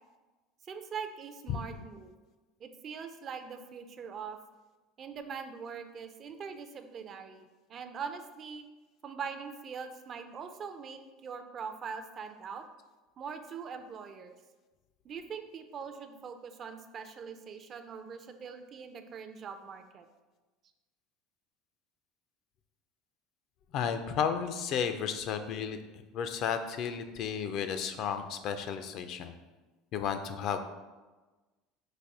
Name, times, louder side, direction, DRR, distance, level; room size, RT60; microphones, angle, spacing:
voice 1, 0.6-2.1 2.6-4.4 5.0-8.6 9.0-12.7 13.2-14.3 15.0-20.1, right 6 dB, 35° right, 8 dB, 0.4 m, -42 dB
voice 2, 23.7-25.8 26.1-29.3 29.9-30.6, left 7 dB, 50° left, 8 dB, 0.4 m, -33 dB
4.1 x 2.6 x 4.7 m, 1.2 s
supercardioid pair, 125°, 0 cm